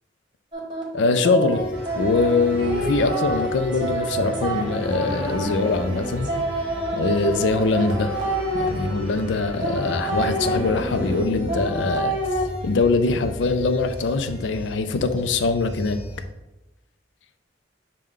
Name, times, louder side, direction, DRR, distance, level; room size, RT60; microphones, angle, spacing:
sound 1, 0.5-8.7 9.6-12.4, right 1 dB, 25° right, 1.0 m, -28 dB
voice 1, 0.9-1.6 2.0-6.3 6.9-8.1 8.6-12.2 12.6-16.0, left 3 dB, 85° left, 9 dB, 0.4 m, -22 dB
sound 2, 1.5-16.3, equal, 55° left, 0.9 m, -37 dB
sound 3, 1.7-11.3, right 1 dB, 70° right, 0.6 m, -37 dB
6.3 x 2.2 x 3.6 m, 1.0 s
head